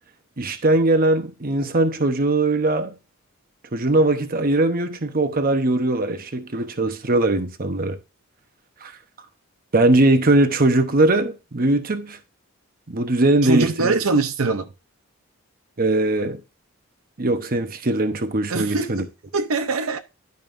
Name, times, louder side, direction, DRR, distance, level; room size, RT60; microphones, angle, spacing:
voice 1, 0.4-2.9 3.7-8.0 8.8-8.9 9.7-12.2 12.9-14.0 15.8-16.4 17.2-19.1, right 2 dB, 45° right, 0.9 m, -20 dB
voice 2, 13.4-14.7 18.5-19.0 19.3-20.0, right 3 dB, 75° right, 0.7 m, -22 dB
11.0 x 5.3 x 2.6 m
head